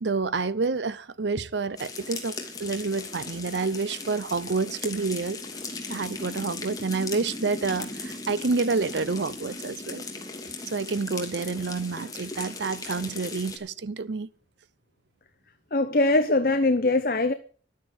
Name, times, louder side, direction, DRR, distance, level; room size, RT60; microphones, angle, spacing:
voice 1, 0.0-5.4 5.9-10.0 10.7-14.3, right 4 dB, 75° right, 0.6 m, -28 dB
sound 1, 1.8-13.6, left 3 dB, 20° left, 2.8 m, -38 dB
voice 2, 15.7-17.3, left 2 dB, 50° left, 0.9 m, -22 dB
12.5 x 9.9 x 8.2 m
head